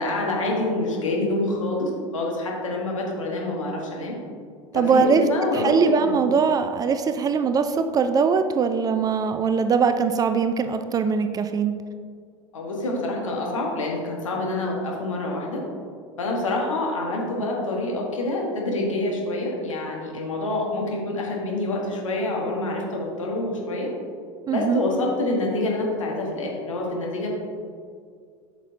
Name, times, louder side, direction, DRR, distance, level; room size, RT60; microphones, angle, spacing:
voice 1, 0.0-4.2 4.7-5.7 6.1-6.2 12.5-15.6 16.2-23.9 24.5-27.3, left 2 dB, 75° left, -1 dB, 1.4 m, -26 dB
voice 2, 4.7-5.2 5.5-11.7 24.5-24.8, right 5 dB, 20° right, 9 dB, 0.4 m, -21 dB
8.0 x 5.9 x 2.7 m, 2.1 s
figure-of-eight pair, 80°, 17 cm